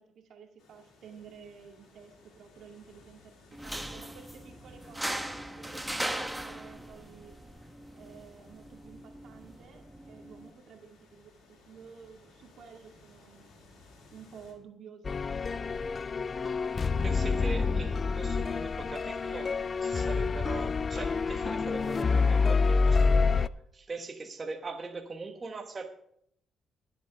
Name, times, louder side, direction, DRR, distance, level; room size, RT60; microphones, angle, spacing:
voice 1, 0.0-7.3 7.9-13.5 14.1-15.2, right 6 dB, 70° right, 2 dB, 2.1 m, -52 dB
sound 1, 0.6-14.5, left 3 dB, 80° left, 4.1 m, -59 dB
sound 2, 3.5-10.5, right 1 dB, 5° right, 1.1 m, -39 dB
sound 3, 15.0-23.5, left 4 dB, 35° left, 0.4 m, -27 dB
voice 2, 16.7-25.9, right 3 dB, 30° right, 3 dB, 1.4 m, -41 dB
21.0 x 8.0 x 3.5 m, 0.69 s
cardioid pair, 90°, 0 cm